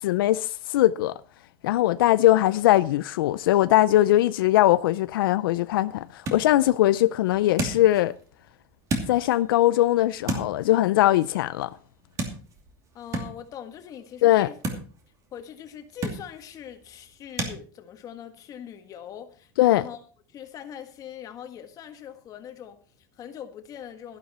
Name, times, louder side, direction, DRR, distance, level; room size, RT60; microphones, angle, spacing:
voice 1, 0.0-1.2 1.6-8.1 9.1-11.8 14.2-14.5 19.6-19.9, left 14 dB, 90° left, 0.5 m, -21 dB
sound 1, 5.1-17.6, right 3 dB, 30° right, 2.6 m, -37 dB
voice 2, 12.9-14.6 15.3-20.0 20.3-24.2, left 9 dB, 30° left, 1.7 m, -42 dB
12.0 x 11.5 x 4.3 m
supercardioid pair, 150°, 11 cm